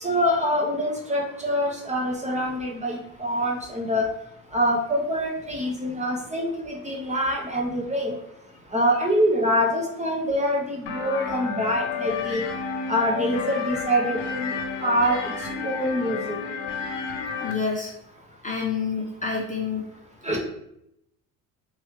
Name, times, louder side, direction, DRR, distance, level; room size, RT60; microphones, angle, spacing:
voice 1, 0.0-4.1 4.5-8.1 8.7-12.4 12.9-14.5 14.8-15.2 15.6-16.4 20.2-20.4, equal, 15° right, -1 dB, 1.0 m, -25 dB
sound 1, 10.9-17.5, left 6 dB, 70° left, 0.9 m, -31 dB
voice 2, 17.4-17.9 18.4-19.8, left 5 dB, 20° left, -3 dB, 0.8 m, -28 dB
3.6 x 3.1 x 3.1 m, 0.79 s
supercardioid pair, 75°, 42 cm